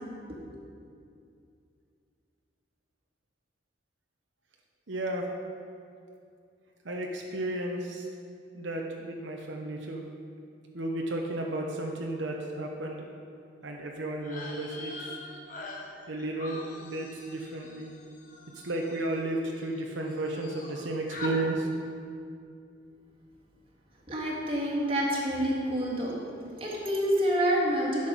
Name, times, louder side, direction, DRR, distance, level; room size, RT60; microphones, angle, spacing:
voice 1, 4.9-5.3 6.8-8.1 8.6-10.0 10.7-13.1 13.6-15.1 16.1-17.9 18.6-21.7, right 1 dB, 80° right, 0 dB, 0.9 m, -33 dB
sound 1, 14.2-19.8 20.1-20.8 21.1-21.4, left 2 dB, 45° left, 1.3 m, -43 dB
voice 2, 24.1-26.2 26.6-28.1, equal, 30° right, -4 dB, 2.0 m, -27 dB
11.0 x 6.7 x 5.2 m, 2.4 s
head